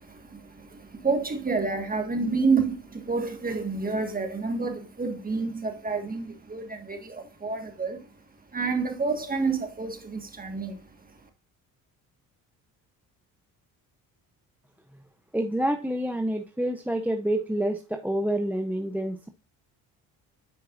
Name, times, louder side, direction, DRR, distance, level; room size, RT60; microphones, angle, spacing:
voice 1, 0.0-8.1 8.5-11.3, right 4 dB, 20° right, 1.6 m, -29 dB
voice 2, 15.3-19.3, right 1 dB, 5° right, 0.6 m, -28 dB
9.1 x 4.5 x 2.5 m
supercardioid pair, 85°, 39 cm